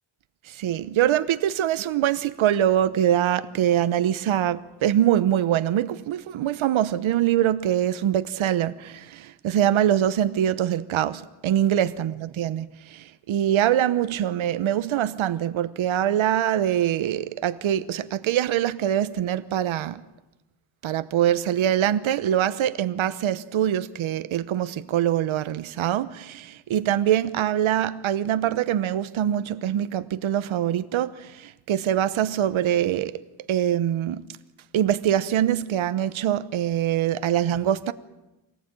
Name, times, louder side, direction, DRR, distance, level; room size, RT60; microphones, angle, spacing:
voice 1, 0.5-20.0 20.8-33.2 33.5-34.3 34.7-37.9, right 11 dB, 85° right, 1.1 m, -24 dB
25.5 x 19.0 x 8.9 m
cardioid pair, 125°, 46 cm